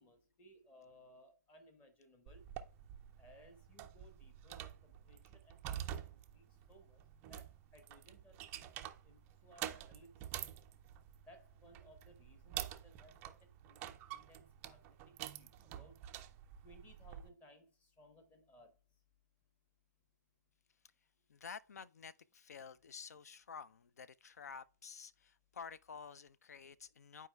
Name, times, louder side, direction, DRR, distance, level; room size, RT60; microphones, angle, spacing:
voice 1, 0.0-2.5 3.2-7.0 7.3-10.5 11.3-13.8 14.1-16.0 16.6-18.7, equal, 15° left, 1.1 m, -63 dB
sound 1, 2.3-17.3, right 11 dB, 20° right, 0.4 m, -48 dB
voice 2, 21.3-27.3, left 6 dB, 60° left, 0.4 m, -51 dB
10.5 x 4.7 x 2.2 m
figure-of-eight pair, 130°, 10 cm